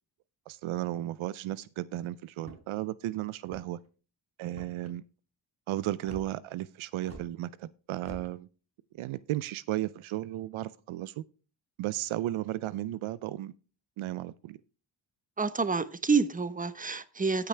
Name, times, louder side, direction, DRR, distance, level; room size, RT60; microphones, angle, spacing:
voice 1, 0.5-3.8 4.4-5.0 5.7-8.5 8.9-11.2 11.8-13.5 14.0-14.6, right 14 dB, 80° right, 0.6 m, -34 dB
sound 1, 2.4-2.8 3.4-3.9 4.5-4.9 6.0-6.3 7.0-7.3 8.0-8.3, right 2 dB, 30° right, 3.6 m, -46 dB
voice 2, 15.4-17.5, right 4 dB, 15° right, 0.9 m, -28 dB
17.0 x 5.9 x 3.3 m
cardioid pair, 55°, 47 cm